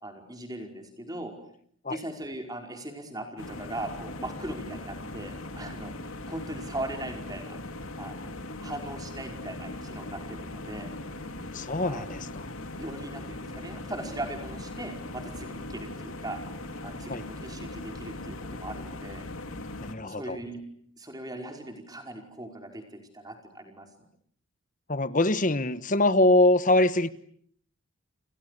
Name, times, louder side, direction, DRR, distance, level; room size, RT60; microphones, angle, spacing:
voice 1, 0.0-1.3 1.9-5.9 6.3-7.6 8.0-8.3 8.6-10.9 11.8-12.2 12.8-16.4 16.8-19.3 20.0-20.6 21.0-23.9, right 1 dB, 15° right, 4 dB, 5.2 m, -39 dB
sound 1, 3.4-20.0, left 2 dB, 70° left, 3.0 m, -39 dB
voice 2, 11.5-12.4 17.1-17.2 19.8-20.4 24.9-27.1, left 2 dB, 35° left, 14 dB, 1.2 m, -23 dB
29.5 x 28.5 x 6.8 m, 0.62 s
head